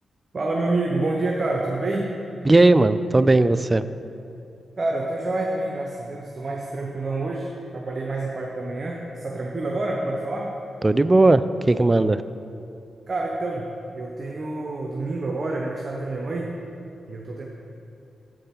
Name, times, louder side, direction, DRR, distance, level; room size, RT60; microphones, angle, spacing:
voice 1, 0.3-2.1 4.8-7.5 7.7-10.5 13.1-13.7 13.9-16.5 17.1-17.5, right 2 dB, 50° right, -1 dB, 0.9 m, -27 dB
voice 2, 2.5-3.8 10.8-12.2, right 2 dB, 25° right, 13 dB, 0.3 m, -17 dB
7.6 x 5.2 x 5.8 m, 2.7 s
cardioid pair, 55°, 0 cm